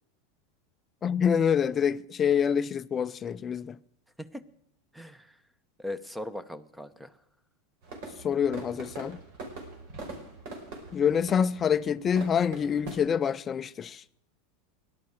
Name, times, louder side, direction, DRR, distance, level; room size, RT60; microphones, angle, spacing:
voice 1, 1.0-3.8 8.2-9.2 10.9-14.0, left 7 dB, 25° left, 0.5 m, -26 dB
voice 2, 4.9-5.4 5.8-7.1, left 1 dB, 5° right, 0.9 m, -39 dB
sound 1, 7.8-13.0, right 3 dB, 60° right, 5.2 m, -42 dB
17.5 x 11.5 x 6.4 m
supercardioid pair, 135°, 0 cm